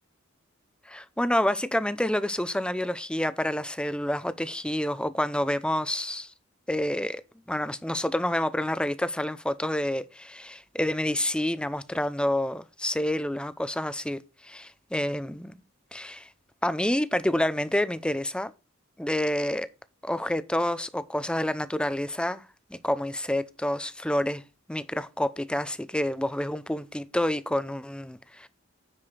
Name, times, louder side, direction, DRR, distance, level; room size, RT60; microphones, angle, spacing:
voice 1, 0.9-6.3 6.7-7.2 7.5-15.6 15.9-16.3 16.6-18.5 19.0-19.7 20.0-22.4 22.7-24.4 24.7-28.5, left 1 dB, 5° left, 0.6 m, -28 dB
9.9 x 4.9 x 5.7 m
head